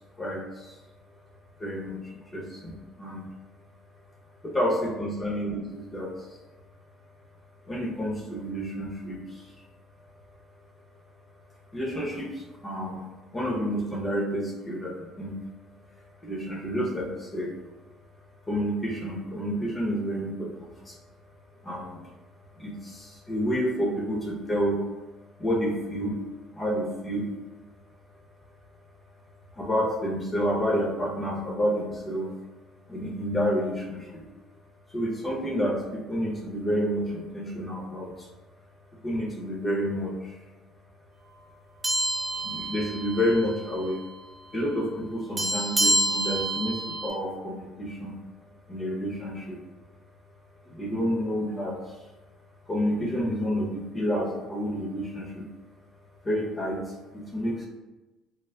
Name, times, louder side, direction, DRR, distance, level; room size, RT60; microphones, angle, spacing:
voice 1, 0.2-0.8 1.6-3.3 4.4-6.4 7.7-9.5 11.7-15.4 16.2-17.5 18.5-21.0 21.6-22.0 22.6-24.8 25.4-26.2 26.5-27.3 29.5-32.3 32.9-34.2 34.9-38.3 39.0-40.4 42.4-44.0 44.5-48.1 48.7-49.6 50.6-51.8 52.7-55.5 56.2-56.8 57.1-57.6, equal, 20° left, -3 dB, 0.7 m, -29 dB
sound 1, 41.8-43.5 43.8-44.0 45.4-47.1, right 1 dB, 15° right, 0.4 m, -27 dB
3.4 x 2.1 x 2.2 m, 1.1 s
cardioid pair, 110°, 0 cm